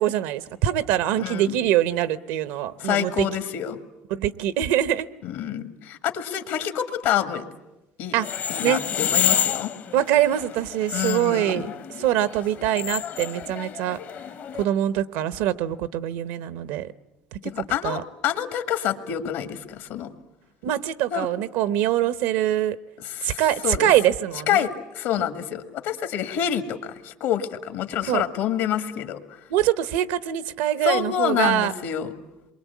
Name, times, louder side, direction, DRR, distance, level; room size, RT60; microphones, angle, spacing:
voice 1, 0.0-3.3 4.1-5.1 8.1-8.3 8.6-8.8 9.9-11.7 12.0-14.0 14.6-16.9 17.3-17.4 17.8-18.0 20.6-22.8 23.2-24.7 25.2-25.3 28.1-28.2 29.5-31.7, right 12 dB, 85° right, 15 dB, 0.9 m, -23 dB
voice 2, 1.2-1.6 2.8-3.8 5.2-7.4 8.0-8.1 8.5-9.7 10.9-11.7 17.4-20.1 21.1-21.3 23.0-23.9 24.5-29.2 30.8-32.1, left 10 dB, 80° left, 8 dB, 2.0 m, -27 dB
sound 1, 8.2-14.6, left 9 dB, 50° left, 0.9 m, -29 dB
27.5 x 23.0 x 8.4 m, 0.98 s
cardioid pair, 110°, 4 cm